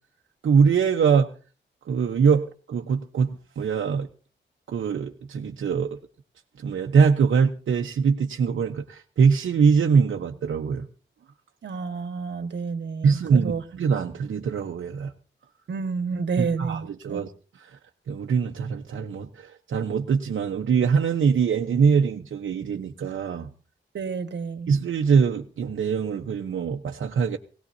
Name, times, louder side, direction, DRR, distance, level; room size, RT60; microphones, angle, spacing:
voice 1, 0.4-1.3 1.9-4.1 4.7-6.0 6.6-10.9 13.0-15.1 16.4-17.8 18.1-23.5 24.7-27.4, right 6 dB, 80° right, 2 dB, 1.0 m, -23 dB
voice 2, 11.6-13.6 15.7-17.2 23.9-24.7, right 5 dB, 65° right, 8 dB, 1.6 m, -30 dB
20.5 x 18.0 x 2.8 m, 0.37 s
wide cardioid pair, 170°, 20 cm